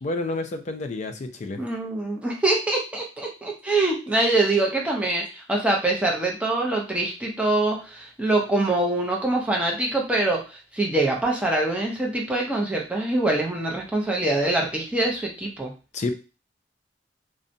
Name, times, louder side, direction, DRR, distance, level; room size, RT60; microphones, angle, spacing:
voice 1, 0.0-1.6 15.9-16.1, left 2 dB, 40° left, 6 dB, 0.3 m, -29 dB
voice 2, 1.6-10.4 10.7-15.7, right 2 dB, 5° right, -1 dB, 0.5 m, -24 dB
2.6 x 2.1 x 2.6 m, 0.31 s
head